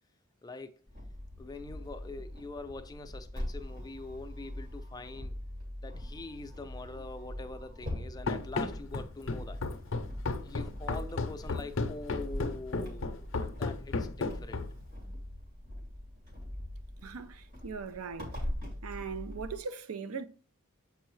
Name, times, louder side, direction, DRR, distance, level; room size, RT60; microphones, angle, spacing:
voice 1, 0.4-0.8 1.4-5.4 5.8-9.6 10.4-14.6, left 2 dB, 20° left, 0.4 m, -44 dB
sound 1, 0.9-19.6, left 1 dB, 50° right, 2.5 m, -42 dB
Run, 8.3-14.9, left 3 dB, 60° left, 0.6 m, -34 dB
voice 2, 17.0-18.4 18.8-20.3, right 5 dB, 90° right, 0.5 m, -39 dB
7.4 x 4.6 x 3.1 m
head